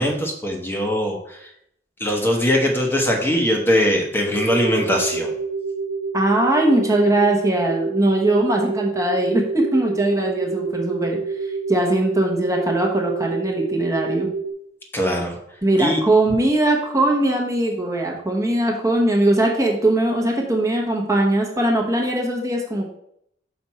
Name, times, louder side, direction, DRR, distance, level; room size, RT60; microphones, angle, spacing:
voice 1, 0.0-1.5 2.0-5.3 14.9-16.0, equal, 10° left, 0 dB, 1.0 m, -21 dB
sound 1, 4.3-14.5, right 4 dB, 70° right, 0.6 m, -28 dB
voice 2, 6.1-14.3 15.6-22.9, right 1 dB, 15° right, 0 dB, 1.0 m, -20 dB
6.1 x 5.1 x 4.2 m, 0.72 s
head